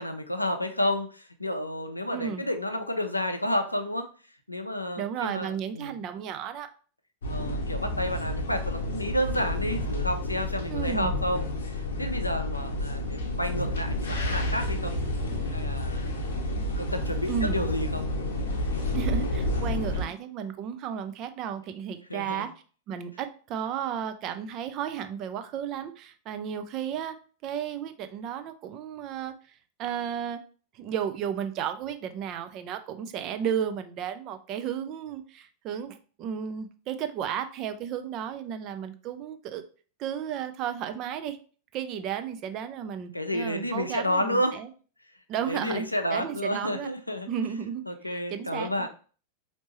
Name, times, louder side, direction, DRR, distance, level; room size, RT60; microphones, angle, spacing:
voice 1, 0.0-4.1 4.5-6.0 7.3-14.9 15.5-16.1 16.8-18.1 22.1-22.4 43.1-44.6 45.5-47.3 47.9-48.9, left 1 dB, 85° left, 7 dB, 0.5 m, -30 dB
voice 2, 2.1-2.4 5.0-6.7 10.7-11.1 17.3-17.7 18.9-22.5 22.9-27.2 27.4-29.3 29.8-30.4 30.7-39.6 40.0-41.4 41.7-44.7 45.3-46.9 47.3-48.9, right 8 dB, 35° right, 9 dB, 0.5 m, -33 dB
sound 1, 7.2-20.0, left 1 dB, 65° left, 0.9 m, -30 dB
4.3 x 2.9 x 2.9 m, 0.39 s
figure-of-eight pair, 90°, 0 cm